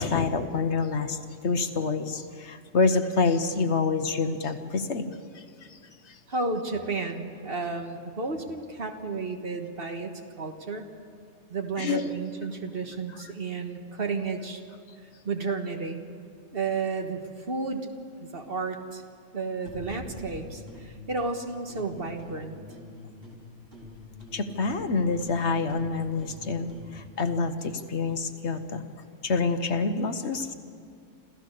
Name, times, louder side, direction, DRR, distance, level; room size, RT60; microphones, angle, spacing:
voice 1, 0.0-5.4 5.7-5.8 6.1-6.2 11.8-12.1 24.3-28.8 29.2-30.5, left 4 dB, 60° left, 8 dB, 1.3 m, -27 dB
voice 2, 6.3-10.9 11.5-14.6 15.0-16.0 16.5-17.9 18.2-19.0 19.3-22.5, right 4 dB, 50° right, 4 dB, 1.6 m, -32 dB
sound 1, 19.6-21.3 21.7-23.4 23.7-27.4, left 2 dB, 70° right, 4.3 m, -45 dB
27.0 x 14.5 x 6.7 m, 2.4 s
omnidirectional pair, 1.3 m